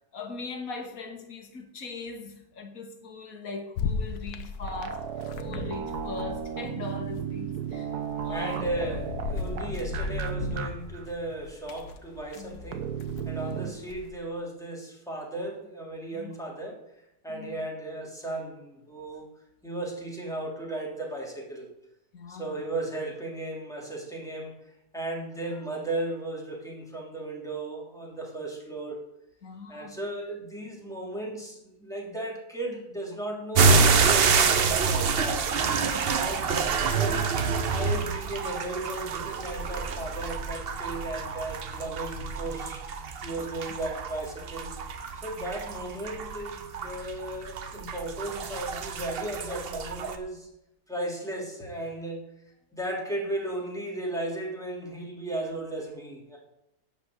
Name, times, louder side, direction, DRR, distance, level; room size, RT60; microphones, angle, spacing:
voice 1, 0.1-5.0 5.4-8.0 8.2-8.7 12.3-12.6 13.4-13.7 16.1-16.3 17.3-17.6 22.1-22.6 29.4-30.0 35.8-36.2 43.6-43.7, left 4 dB, 60° left, 5 dB, 1.9 m, -40 dB
sound 1, 3.8-6.6 6.9-14.1, left 5 dB, 80° left, 1.4 m, -36 dB
sound 2, 4.7-10.7 10.9-11.0 12.7-13.7, right 9 dB, 80° right, 1.5 m, -34 dB
voice 2, 8.3-12.9 13.2-16.8 17.2-19.3 19.6-21.7 22.3-29.0 29.7-35.4 36.1-36.5 36.9-42.8 43.2-44.8 45.2-50.5 50.9-52.2 52.7-56.4, right 1 dB, ahead, -3 dB, 3.1 m, -35 dB
sound 3, 33.5-50.2, right 5 dB, 50° right, 0.8 m, -27 dB
11.5 x 5.2 x 8.1 m, 0.85 s
omnidirectional pair, 1.7 m